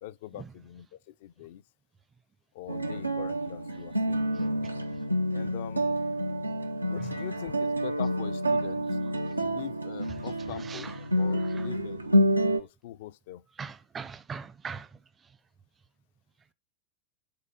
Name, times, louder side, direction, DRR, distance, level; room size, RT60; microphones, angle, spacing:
voice 1, 0.0-1.6 2.5-4.6 5.3-6.0 6.9-8.9 9.4-13.4, left 12 dB, 55° left, 0.4 m, -43 dB
sound 1, 2.7-12.6, equal, 85° right, 0.5 m, -28 dB
voice 2, 13.6-14.9, right 5 dB, 20° right, 0.5 m, -40 dB
5.6 x 3.9 x 5.1 m
figure-of-eight pair, 90°, 0 cm